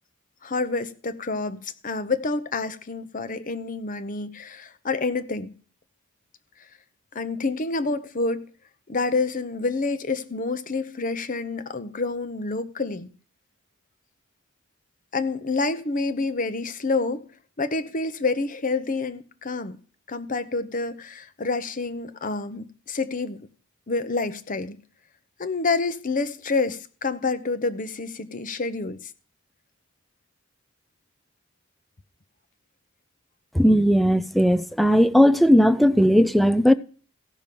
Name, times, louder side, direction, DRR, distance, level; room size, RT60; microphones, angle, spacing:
voice 1, 0.4-5.5 7.1-8.5 8.9-13.1 15.1-17.2 17.6-19.8 20.1-23.5 23.9-24.8 25.4-29.0, left 3 dB, 40° left, 0.8 m, -28 dB
voice 2, 33.6-36.7, equal, ahead, 0.5 m, -17 dB
16.0 x 6.1 x 5.3 m
head